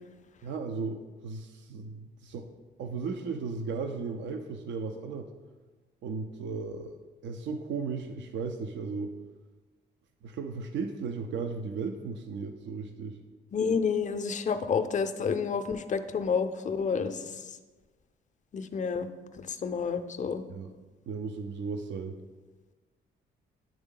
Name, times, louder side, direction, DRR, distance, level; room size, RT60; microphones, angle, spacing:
voice 1, 0.4-2.5 2.8-5.3 6.0-6.9 7.2-9.1 10.2-13.2 20.5-20.7 21.1-22.2, right 4 dB, 65° right, 7 dB, 0.5 m, -35 dB
voice 2, 13.5-17.3 18.5-19.1 19.5-20.4, left 6 dB, 40° left, 9 dB, 0.5 m, -29 dB
10.0 x 3.6 x 3.8 m, 1.3 s
cardioid pair, 90°, 20 cm